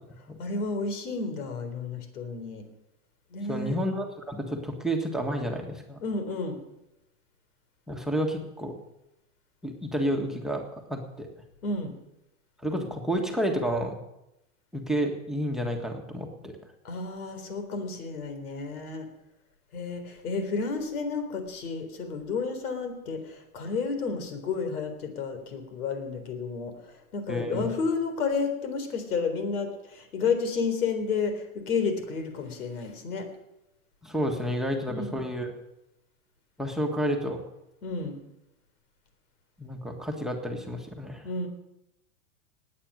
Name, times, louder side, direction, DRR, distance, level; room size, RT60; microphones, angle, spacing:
voice 1, 0.4-2.6 3.3-3.8 6.0-6.6 11.6-12.0 16.8-19.1 19.7-33.3 34.9-35.2 37.8-38.2 41.2-41.5, left 4 dB, 80° left, 7 dB, 3.9 m, -31 dB
voice 2, 3.5-6.0 7.9-8.7 9.6-10.6 10.9-11.3 12.6-13.9 14.7-16.6 27.3-27.7 34.0-35.5 36.6-37.4 39.6-41.3, equal, ahead, 4 dB, 1.5 m, -30 dB
19.0 x 8.8 x 6.4 m, 0.90 s
hypercardioid pair, 135°, 44 cm